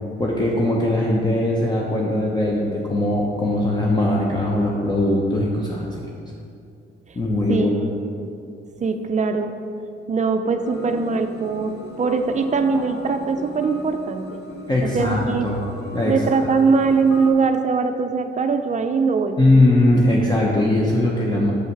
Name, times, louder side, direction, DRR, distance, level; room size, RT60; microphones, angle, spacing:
voice 1, 0.2-5.9 7.1-7.7 14.7-15.6 15.9-16.1 19.4-21.5, left 1 dB, 20° left, -3 dB, 0.8 m, -20 dB
voice 2, 7.5-7.8 8.2-8.3 8.8-9.5 10.1-14.4 14.8-15.5 16.1-19.5, right 4 dB, 40° right, 7 dB, 0.5 m, -21 dB
sound 1, 10.6-17.3, left 2 dB, 55° left, 0.8 m, -38 dB
6.5 x 5.4 x 4.7 m, 2.4 s
cardioid pair, 90°, 20 cm